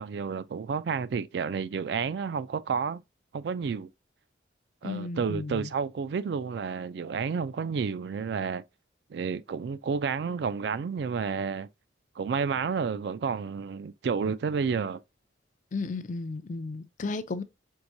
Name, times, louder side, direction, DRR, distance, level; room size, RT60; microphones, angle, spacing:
voice 1, 0.0-3.0 3.3-3.9 4.8-8.6 9.1-11.7 12.2-15.0, right 5 dB, 60° right, 0.3 m, -30 dB
voice 2, 4.8-5.7 15.7-17.4, left 3 dB, 45° left, 0.4 m, -34 dB
4.6 x 3.6 x 2.6 m
head